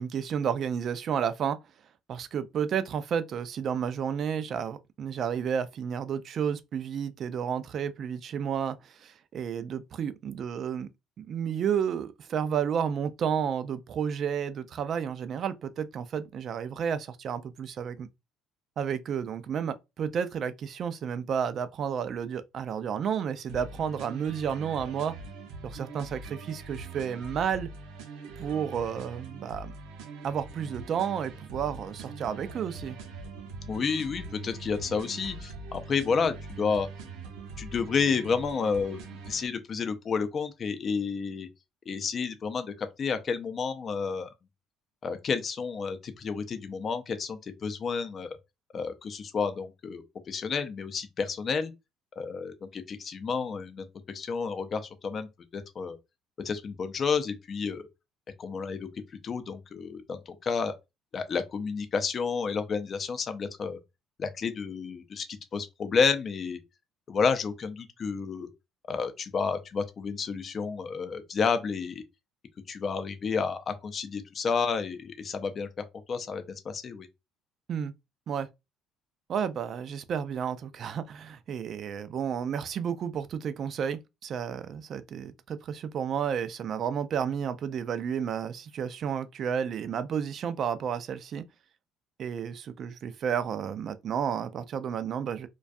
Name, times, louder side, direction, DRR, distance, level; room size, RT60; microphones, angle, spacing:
voice 1, 0.0-1.6 2.1-10.9 11.2-18.1 18.8-25.1 25.6-27.7 28.4-29.7 30.2-33.0 77.7-77.9 78.3-78.5 79.3-91.5 92.2-95.5, right 8 dB, 50° right, 0.3 m, -31 dB
sound 1, 23.5-39.5, right 3 dB, 85° right, 0.7 m, -43 dB
voice 2, 33.7-36.9 37.6-39.0 39.3-41.5 41.9-44.3 45.0-48.3 48.7-51.7 52.2-53.9 54.1-56.0 56.4-57.9 58.4-58.9 59.2-60.7 61.1-63.8 64.2-65.2 65.5-66.6 67.1-68.5 68.9-72.0 72.7-75.7 76.1-77.1, left 5 dB, 40° left, 0.5 m, -30 dB
2.2 x 2.2 x 2.5 m
supercardioid pair, 90°, 0 cm